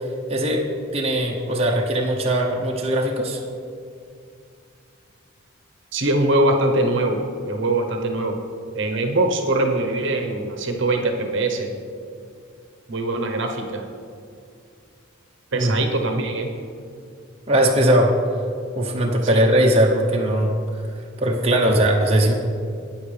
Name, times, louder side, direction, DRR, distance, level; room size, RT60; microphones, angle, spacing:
voice 1, 0.3-0.7 0.9-3.4 15.5-15.7 17.5-18.1 18.7-20.6 21.2-22.3, right 1 dB, 30° right, -1 dB, 0.8 m, -19 dB
voice 2, 5.9-8.4 8.7-11.7 12.9-13.8 15.5-16.5 19.2-19.4, right 2 dB, 60° right, 3 dB, 1.0 m, -22 dB
13.0 x 8.9 x 3.4 m, 2.4 s
head